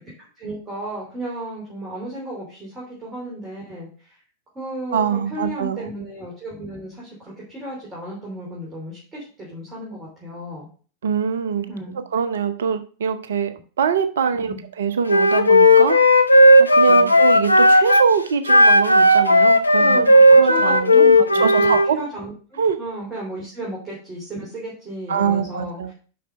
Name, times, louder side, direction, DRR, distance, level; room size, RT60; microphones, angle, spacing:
voice 1, 0.4-4.1 4.6-10.7 11.7-12.0 14.5-14.6 16.8-17.1 19.8-25.9, right 1 dB, 15° right, -5 dB, 3.4 m, -34 dB
voice 2, 4.9-5.8 11.0-16.0 16.6-20.0 20.4-22.0 22.6-22.8 25.1-25.9, right 6 dB, 65° right, 11 dB, 0.7 m, -23 dB
Wind instrument woodwind instrument, 15.1-18.1 18.5-21.9, left 1 dB, 85° left, 0.6 m, -13 dB
7.7 x 5.6 x 5.1 m, 0.40 s
figure-of-eight pair, 90°, 0 cm